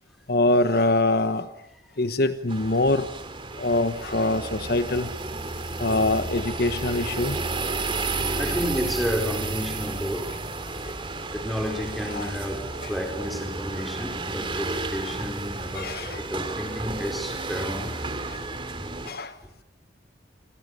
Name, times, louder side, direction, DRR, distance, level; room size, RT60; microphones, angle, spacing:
voice 1, 0.3-1.5 2.0-3.1 3.6-5.1 5.8-7.4 8.5-8.6 10.8-10.9 12.1-12.3 12.8-12.9 15.1-15.2 15.7-16.2 18.3-18.4 19.1-19.4, left 2 dB, 60° left, 1.2 m, -24 dB
sound 1, 2.5-19.1, right 3 dB, 30° right, 2.9 m, -32 dB
voice 2, 8.4-10.4 10.8-10.9 11.3-18.1 18.8-18.9, equal, ahead, 5.0 m, -31 dB
27.5 x 26.0 x 6.9 m
head